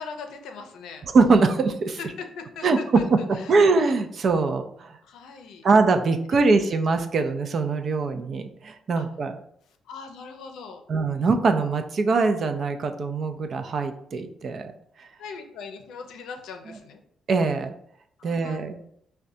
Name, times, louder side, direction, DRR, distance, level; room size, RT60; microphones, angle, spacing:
voice 1, 0.0-1.0 2.0-3.0 3.3-3.6 5.0-5.6 6.3-6.8 8.9-9.1 9.9-10.8 15.2-17.0 18.2-18.6, left 5 dB, 85° left, 5 dB, 0.5 m, -40 dB
voice 2, 1.1-2.0 2.6-3.2 3.5-5.0 5.6-9.4 10.9-14.7 15.0-15.1 16.7-16.8 17.3-17.7 18.2-18.8, right 4 dB, 50° right, 7 dB, 0.4 m, -22 dB
4.8 x 2.2 x 2.6 m, 0.68 s
cardioid pair, 90°, 0 cm